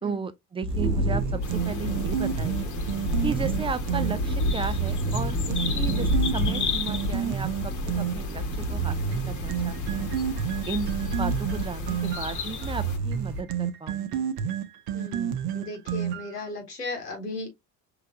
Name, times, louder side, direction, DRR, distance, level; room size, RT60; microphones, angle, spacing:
voice 1, 0.0-2.7 3.2-8.4 8.7-10.1 10.7-14.3, right 5 dB, 15° right, 0.4 m, -35 dB
sound 1, 0.6-4.2 4.6-8.2 8.6-16.4, right 8 dB, 50° right, 0.8 m, -30 dB
sound 2, 0.7-13.4, equal, 90° right, 1.0 m, -30 dB
sound 3, 1.4-13.0, left 6 dB, 40° left, 1.1 m, -36 dB
voice 2, 14.9-17.5, left 2 dB, 85° left, 1.4 m, -36 dB
5.6 x 3.2 x 2.4 m
figure-of-eight pair, 55°, 47 cm